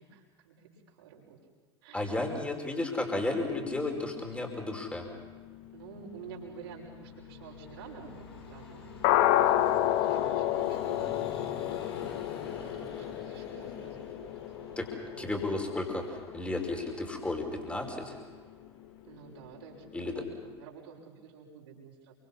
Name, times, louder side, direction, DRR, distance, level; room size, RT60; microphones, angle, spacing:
voice 1, 0.0-1.4 1.8-2.3 5.7-15.4 19.0-22.1, right 6 dB, 60° right, -3 dB, 6.4 m, -50 dB
voice 2, 1.9-5.1 14.8-14.9 15.2-18.1 19.9-20.2, left 2 dB, 10° left, 2 dB, 5.2 m, -33 dB
sound 1, 3.1-17.9 18.2-18.4 18.6-18.7 19.1-19.2 19.6-19.7 19.9-20.0, left 13 dB, 50° left, 1.0 m, -33 dB
Vehicle, 5.0-19.7, left 3 dB, 65° left, 4.8 m, -48 dB
28.5 x 25.0 x 5.6 m, 1.5 s
figure-of-eight pair, 75°, 14 cm